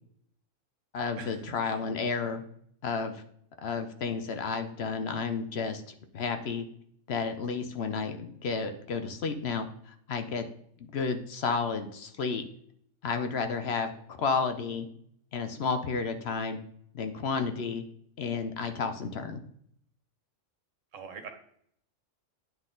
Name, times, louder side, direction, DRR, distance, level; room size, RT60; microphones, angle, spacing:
voice 1, 0.9-2.4 2.8-3.2 3.6-5.8 6.1-6.7 7.1-10.5 10.9-12.4 13.0-13.9 14.2-14.9 15.3-16.6 16.9-17.8 18.2-19.4, left 5 dB, 60° left, 8 dB, 0.9 m, -31 dB
voice 2, 20.9-21.3, right 5 dB, 80° right, 6 dB, 1.4 m, -42 dB
9.6 x 3.9 x 3.8 m, 0.67 s
omnidirectional pair, 1.3 m